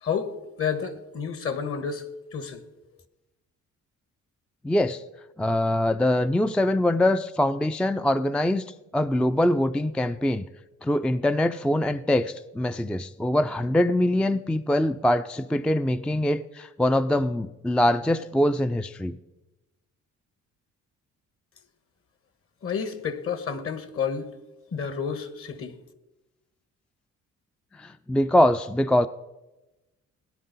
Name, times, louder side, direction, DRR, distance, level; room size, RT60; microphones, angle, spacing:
voice 1, 0.0-2.7 22.6-24.3 24.7-25.8, left 6 dB, 45° left, 1.4 m, -30 dB
voice 2, 4.6-5.0 5.4-10.4 10.8-19.2 27.7-29.1, left 1 dB, 5° left, 0.3 m, -23 dB
17.0 x 10.0 x 4.1 m
cardioid pair, 90°, 30 cm